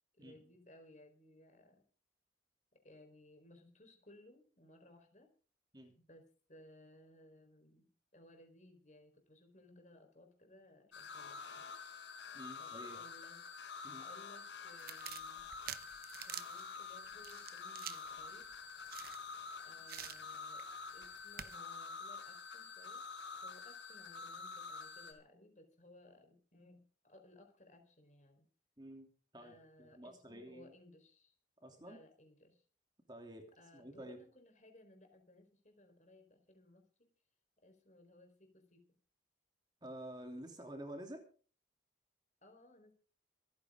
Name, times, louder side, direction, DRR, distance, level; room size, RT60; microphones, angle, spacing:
voice 1, 0.1-1.8 2.8-5.3 5.9-7.9 8.1-11.7 12.6-13.4 13.9-15.4 16.2-18.5 19.6-20.6 20.9-23.0 23.4-28.5 29.4-31.4 31.8-32.6 33.6-37.1 37.6-38.8 42.4-42.9, left 1 dB, 40° left, 5 dB, 4.5 m, -61 dB
sound 1, 10.9-25.1, left 5 dB, 70° left, 4.8 m, -48 dB
voice 2, 12.3-13.0 13.8-14.1 28.8-29.1 29.3-30.7 31.6-32.0 33.1-33.5 33.7-34.2 39.8-41.3, right 1 dB, 20° right, 4 dB, 3.1 m, -50 dB
sound 2, 14.8-19.5 19.9-20.6 21.0-21.6, right 10 dB, 50° right, 1.0 m, -49 dB
27.0 x 9.6 x 3.8 m, 0.39 s
head